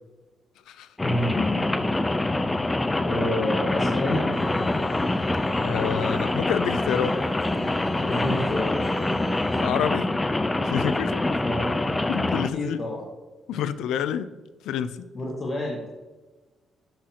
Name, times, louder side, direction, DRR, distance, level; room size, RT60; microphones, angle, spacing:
voice 1, 1.0-1.7 3.0-4.3 8.0-8.8 11.4-11.8 12.5-13.0 15.1-15.9, left 1 dB, 35° left, -3 dB, 1.5 m, -28 dB
Rain, 1.0-12.5, left 2 dB, 15° left, 0.5 m, -25 dB
sound 1, 4.3-9.6, right 1 dB, ahead, 2.0 m, -39 dB
voice 2, 5.6-7.2 9.6-10.1 10.6-11.3 12.1-12.8 13.5-14.3 14.6-15.0, left 9 dB, 85° left, 14 dB, 0.4 m, -28 dB
11.0 x 5.9 x 2.9 m, 1.2 s
cardioid pair, 90°, 0 cm